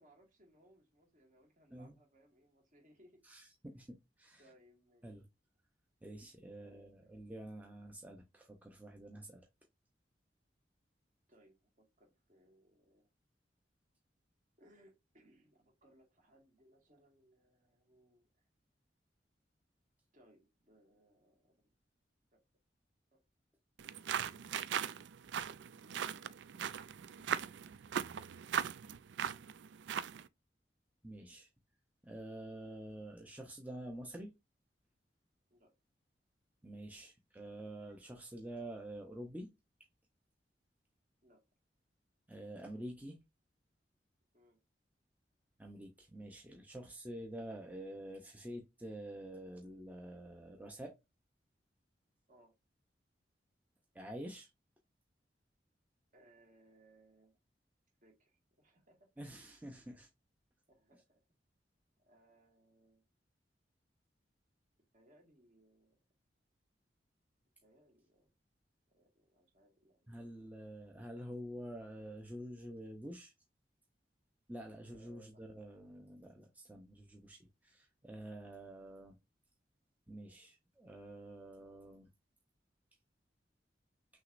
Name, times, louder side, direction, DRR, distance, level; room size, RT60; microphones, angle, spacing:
voice 1, 0.0-3.2 4.4-5.1 6.6-7.1 11.3-13.1 14.6-18.3 20.1-21.7 22.3-22.4 23.1-23.2 24.8-26.5 27.2-27.7 35.5-35.7 41.2-41.4 44.3-44.6 52.3-52.5 56.1-57.4 58.0-59.5 60.7-61.2 62.0-63.0 64.9-66.0 67.6-68.3 68.9-70.2 74.8-75.4, right 1 dB, 45° right, 1.9 m, -67 dB
voice 2, 3.2-4.4 5.0-5.3 6.0-9.5 31.0-31.5 32.0-34.3 36.6-39.5 42.3-43.2 45.6-50.9 53.9-54.5 59.2-60.1 70.1-73.3 74.5-79.2 80.1-82.1, right 1 dB, 10° right, 0.7 m, -48 dB
sound 1, 23.8-30.3, right 8 dB, 80° right, 0.4 m, -39 dB
6.2 x 2.9 x 2.6 m
head